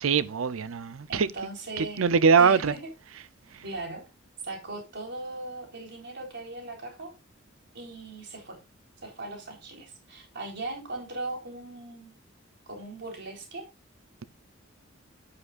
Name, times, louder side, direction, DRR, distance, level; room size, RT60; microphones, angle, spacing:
voice 1, 0.0-1.3 1.8-2.7 3.5-3.6, right 5 dB, 80° right, 0.6 m, -22 dB
voice 2, 1.1-2.1 2.4-2.9 3.6-4.0 4.4-7.1 7.7-8.6 9.0-12.1 12.7-13.7, right 2 dB, 60° right, 4.0 m, -39 dB
11.0 x 9.4 x 2.5 m
head